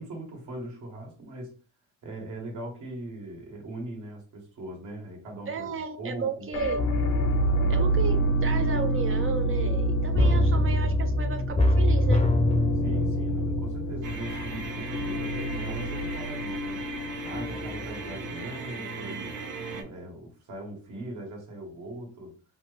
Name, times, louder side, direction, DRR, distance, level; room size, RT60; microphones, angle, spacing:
voice 1, 0.0-1.6 2.0-5.7 6.0-6.5 7.4-7.9 10.0-10.3 12.8-16.8 17.2-19.4 19.7-22.4, right 1 dB, 70° right, 1.4 m, -40 dB
voice 2, 5.5-6.8 7.7-12.3, right 5 dB, 45° right, 0.5 m, -34 dB
sound 1, 6.5-18.4, right 1 dB, 70° left, 0.8 m, -28 dB
sound 2, 10.2-14.8 15.2-15.3, left 1 dB, 20° left, 0.6 m, -24 dB
sound 3, 14.0-19.8, right 4 dB, 85° right, 0.8 m, -38 dB
2.9 x 2.5 x 3.2 m
cardioid pair, 90°, 30 cm